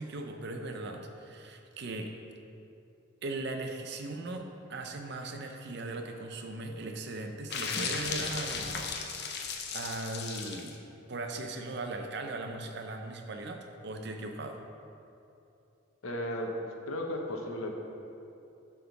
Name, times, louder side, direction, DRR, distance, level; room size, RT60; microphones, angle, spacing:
voice 1, 0.0-2.2 3.2-9.2 9.7-10.8 11.1-14.6, right 2 dB, 50° right, 4 dB, 0.6 m, -38 dB
sound 1, 7.5-10.8, left 5 dB, 50° left, 0.6 m, -35 dB
voice 2, 16.0-17.7, left 1 dB, 85° left, 2 dB, 0.9 m, -35 dB
7.7 x 3.6 x 5.8 m, 2.7 s
head